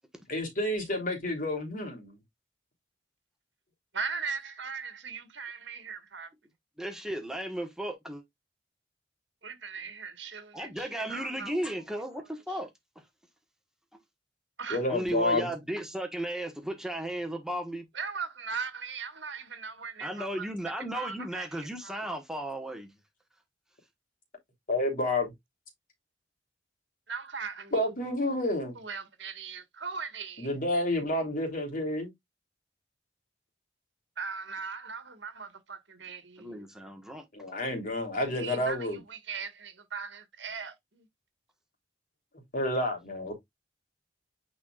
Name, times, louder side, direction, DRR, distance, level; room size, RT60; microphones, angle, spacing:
voice 1, 0.3-2.2 14.7-15.5 24.7-25.3 27.7-28.7 30.4-32.1 37.3-39.0 42.5-43.3, left 1 dB, 45° left, 3.3 m, -29 dB
voice 2, 3.9-6.3 9.4-11.7 12.5-12.6 14.6-14.8 17.9-20.5 20.9-21.5 21.8-22.0 27.1-27.9 28.7-30.5 34.2-36.7 38.3-41.1, right 5 dB, 75° right, 1.7 m, -39 dB
voice 3, 6.8-8.2 10.5-12.7 14.9-17.9 20.0-22.9 36.4-37.2, right 1 dB, 5° right, 1.4 m, -35 dB
9.5 x 4.3 x 2.4 m
head